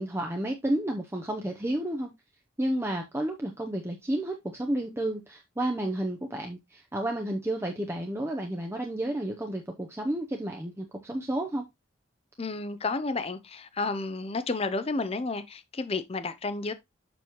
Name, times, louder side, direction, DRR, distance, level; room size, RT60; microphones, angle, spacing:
voice 1, 0.0-2.1 2.6-11.7, right 1 dB, 10° right, 0.7 m, -31 dB
voice 2, 12.4-16.7, left 3 dB, 30° left, 0.6 m, -31 dB
7.0 x 6.1 x 3.0 m
head